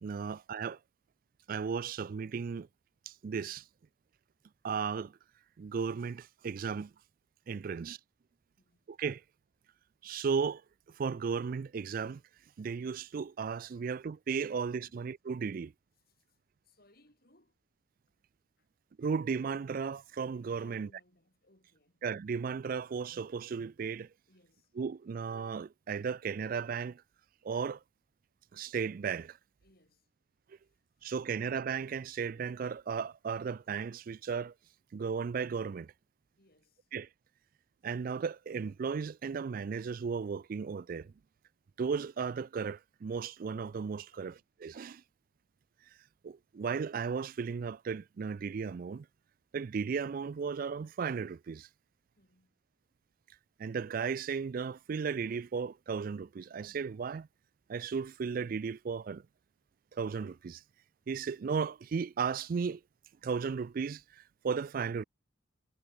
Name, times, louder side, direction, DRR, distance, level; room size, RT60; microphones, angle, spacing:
voice 1, 0.0-0.8 1.5-2.7 3.1-3.6 4.6-5.1 5.6-6.9 7.5-8.0 8.9-9.2 10.0-10.6 11.0-12.2 12.6-15.7 19.0-20.9 22.0-24.1 24.8-27.0 27.4-27.8 28.5-29.4 31.0-34.5 34.9-35.9 36.9-37.1 37.8-41.1 41.8-44.3 44.6-45.0 46.2-49.1 49.5-51.7 53.6-57.3 57.7-59.2 59.9-60.6 61.1-62.8 63.2-65.0, right 6 dB, 45° right, 0.3 m, -35 dB
voice 2, 8.6-8.9 14.8-15.0 16.1-16.4 16.6-17.6 18.6-18.7 20.5-22.0 24.3-24.7 29.6-30.1 30.5-31.1 36.4-36.9 44.1-44.4 52.2-53.0, left 1 dB, 50° left, 5.9 m, -68 dB
head